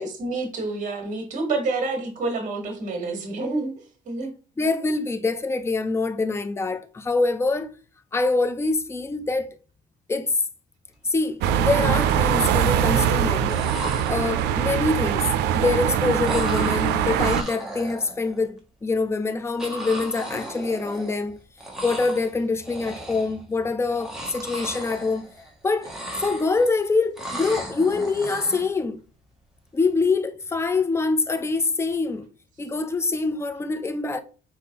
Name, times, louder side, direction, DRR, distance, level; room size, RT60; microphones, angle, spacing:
voice 1, 0.0-4.3, right 3 dB, 50° right, 1.6 m, -28 dB
voice 2, 4.6-7.7 8.1-9.6 10.1-10.3 11.1-13.6 14.1-15.3 15.5-21.4 21.8-25.2 25.6-25.9 26.2-29.0 29.7-32.3 32.6-34.2, left 3 dB, 15° left, 0.5 m, -25 dB
sound 1, 11.1-11.2 11.6-12.2 13.2-13.3 13.5-14.7 16.3-18.5 19.6-21.3 21.6-22.3 22.6-23.4 23.9-25.5 25.8-26.8 27.2-28.7, right 1 dB, 5° right, 1.3 m, -36 dB
sound 2, 11.4-17.4, right 9 dB, 85° right, 0.4 m, -22 dB
4.3 x 3.6 x 2.9 m
cardioid pair, 110°, 17 cm